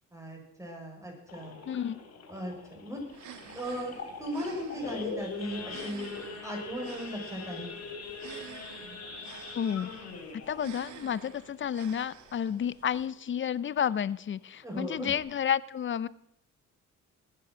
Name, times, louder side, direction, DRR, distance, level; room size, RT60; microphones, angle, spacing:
voice 1, 0.1-1.6 2.3-3.0 3.5-3.9 4.2-7.7 14.6-15.1, equal, 10° right, 0 dB, 6.2 m, -37 dB
Idling / Accelerating revving vroom / Sawing, 1.3-12.4 12.8-13.0 13.2-13.3 13.8-14.1 14.5-14.6 14.8-15.2, left 4 dB, 55° left, 3.3 m, -42 dB
voice 2, 1.7-2.0 9.5-9.9 10.5-16.1, left 8 dB, 40° left, 19 dB, 0.6 m, -31 dB
sound 1, 3.1-13.1, right 8 dB, 75° right, 1.7 m, -50 dB
20.5 x 8.5 x 6.3 m, 0.74 s
cardioid pair, 90°, 30 cm